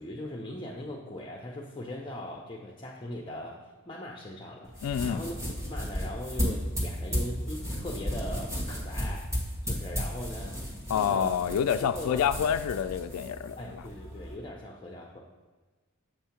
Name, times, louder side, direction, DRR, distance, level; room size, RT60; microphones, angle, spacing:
voice 1, 0.0-5.3 5.7-9.3 9.6-10.6 10.9-11.4 11.8-12.4 13.6-15.2, left 1 dB, 20° left, -1 dB, 0.5 m, -40 dB
sound 1, 4.7-14.3, equal, 15° right, 1.3 m, -34 dB
voice 2, 4.8-5.2 10.9-13.8, left 8 dB, 85° left, 15 dB, 0.3 m, -28 dB
7.4 x 2.7 x 5.7 m, 1.3 s
head